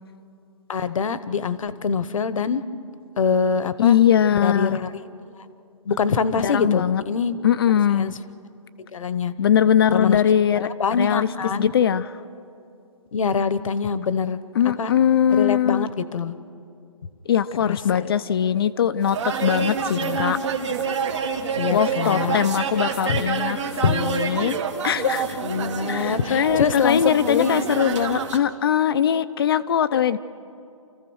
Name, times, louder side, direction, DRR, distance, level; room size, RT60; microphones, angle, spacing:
voice 1, 0.7-2.6 3.2-4.0 4.4-5.0 5.9-7.4 8.0-8.1 8.9-9.3 9.9-10.2 10.5-11.7 13.1-14.4 14.8-14.9 15.3-16.3 17.6-18.1 19.9-20.2 21.6-22.4 23.1-23.2 23.8-24.0 25.4-27.5 29.9-30.2, left 6 dB, 65° left, 14 dB, 1.0 m, -24 dB
voice 2, 3.8-4.8 6.4-7.0 7.4-8.1 9.4-10.7 11.0-11.3 11.6-12.1 14.6-15.9 17.3-20.4 21.7-24.6 24.8-25.4 25.9-30.2, left 9 dB, 45° left, 12 dB, 0.5 m, -21 dB
sound 1, 19.0-28.4, right 5 dB, 55° right, 1.9 m, -27 dB
29.0 x 14.5 x 6.3 m, 2.6 s
hypercardioid pair, 155°, 18 cm